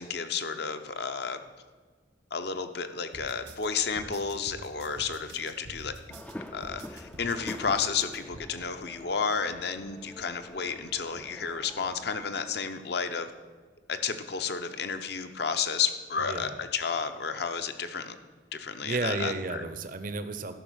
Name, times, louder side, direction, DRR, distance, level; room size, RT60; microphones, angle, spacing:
voice 1, 0.0-1.4 2.3-5.9 6.5-13.3 13.9-18.1 18.5-19.6, left 6 dB, 55° left, 9 dB, 0.7 m, -32 dB
sound 1, 3.1-8.4, right 1 dB, 80° right, 1.4 m, -47 dB
sound 2, 6.1-12.3, left 1 dB, 5° left, 0.3 m, -46 dB
voice 2, 16.2-16.6 18.8-20.5, right 3 dB, 45° right, 10 dB, 0.6 m, -32 dB
12.0 x 5.8 x 6.4 m, 1.4 s
head